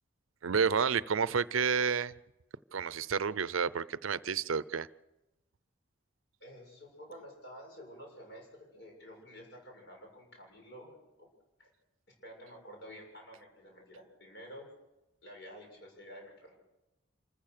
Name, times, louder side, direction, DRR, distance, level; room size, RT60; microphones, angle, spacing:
voice 1, 0.4-2.1 2.7-4.9, right 6 dB, 80° right, 18 dB, 0.6 m, -30 dB
voice 2, 6.4-11.3 11.6-11.7 12.2-14.7 15.2-16.5, equal, 55° left, 1 dB, 7.2 m, -50 dB
26.5 x 14.5 x 6.8 m, 0.98 s
head